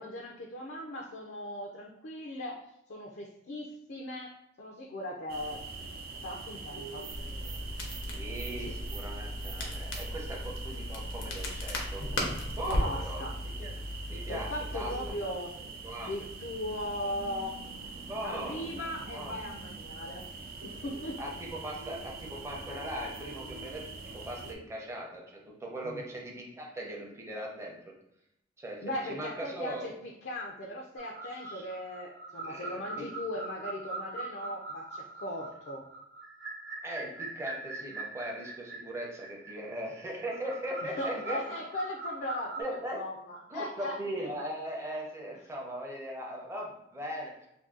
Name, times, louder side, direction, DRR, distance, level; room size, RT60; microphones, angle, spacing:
voice 1, 0.0-2.6 2.9-4.3 4.6-5.6 6.2-7.0 8.6-8.8 12.3-13.4 14.3-15.6 16.1-17.5 18.2-20.3 20.6-21.2 25.8-26.0 28.8-35.8 40.8-44.0, left 1 dB, 60° left, 0 dB, 0.4 m, -38 dB
sound 1, 5.3-24.6, right 3 dB, 50° right, 0.4 m, -43 dB
Crackle, 7.1-15.1, left 1 dB, 90° left, 0.7 m, -36 dB
voice 2, 8.0-12.0 12.6-13.2 13.6-13.8 14.1-15.2 15.8-16.1 18.0-18.8 19.1-19.3 21.2-23.8 24.1-27.8 28.6-29.9 31.2-31.7 32.4-33.1 36.8-41.4 42.6-43.0 43.5-47.3, right 1 dB, 15° right, -2 dB, 0.6 m, -39 dB
sound 2, 31.0-42.6, right 3 dB, 75° right, 0.9 m, -42 dB
2.6 x 2.6 x 3.7 m, 0.82 s
head